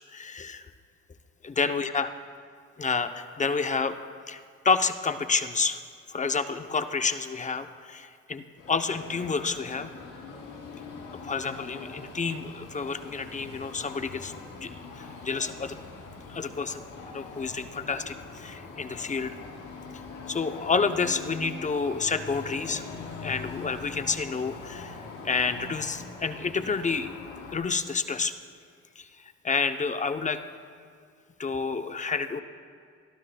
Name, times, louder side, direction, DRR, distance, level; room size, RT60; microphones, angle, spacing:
voice 1, 0.1-0.7 1.4-2.1 2.8-4.0 4.3-5.8 6.1-9.9 11.2-15.8 16.3-16.8 17.1-19.3 20.3-22.8 23.2-25.0 25.2-27.1 27.5-28.3 29.0-29.1 29.4-30.4 31.4-32.4, left 4 dB, 25° left, 9 dB, 0.6 m, -29 dB
sound 1, 8.6-27.6, left 4 dB, 85° left, 2.9 m, -42 dB
25.5 x 12.5 x 2.2 m, 2.2 s
cardioid pair, 90°, 30 cm